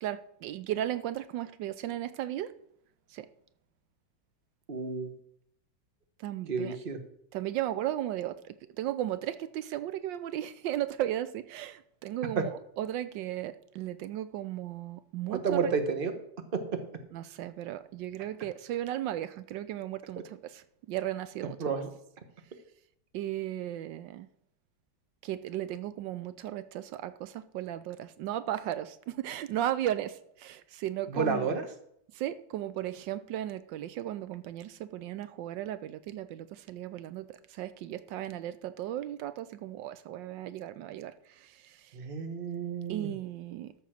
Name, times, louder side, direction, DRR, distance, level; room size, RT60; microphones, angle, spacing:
voice 1, 0.0-2.5 3.1-3.3 6.2-6.8 7.3-12.5 12.8-15.7 17.1-21.7 23.1-24.3 25.2-31.6 32.1-41.9 42.9-43.7, right 12 dB, 85° right, 13 dB, 1.3 m, -35 dB
voice 2, 4.7-5.1 6.5-7.0 12.4-12.5 15.3-16.1 16.5-16.8 21.6-21.9 31.1-31.6 41.9-43.1, right 5 dB, 30° right, 7 dB, 1.3 m, -31 dB
13.5 x 5.8 x 6.4 m, 0.72 s
omnidirectional pair, 2.0 m